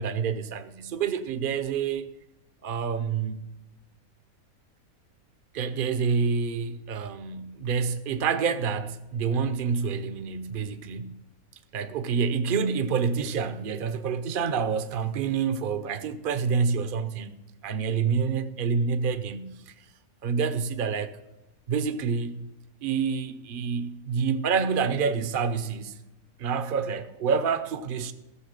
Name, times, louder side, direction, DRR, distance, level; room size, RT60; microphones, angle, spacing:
voice 1, 0.0-2.1 2.6-3.4 5.5-11.2 11.7-17.3 17.6-19.7 20.2-21.2 21.7-22.5 22.8-25.9 26.4-28.1, right 6 dB, 45° right, 0.8 m, -27 dB
14.5 x 7.0 x 6.6 m
omnidirectional pair, 1.5 m